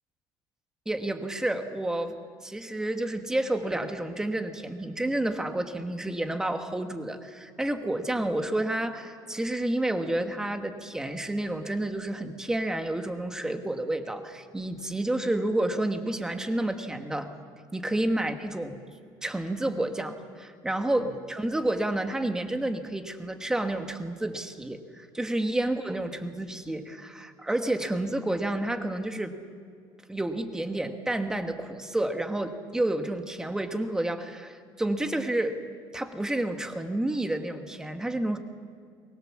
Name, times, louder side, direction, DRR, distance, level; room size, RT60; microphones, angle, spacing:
voice 1, 0.8-2.2 2.4-17.3 17.7-18.8 19.2-29.4 30.1-35.6 35.9-38.4, right 1 dB, 5° right, 6 dB, 1.3 m, -30 dB
23.5 x 21.0 x 7.3 m, 2.2 s
cardioid pair, 170°, 9 cm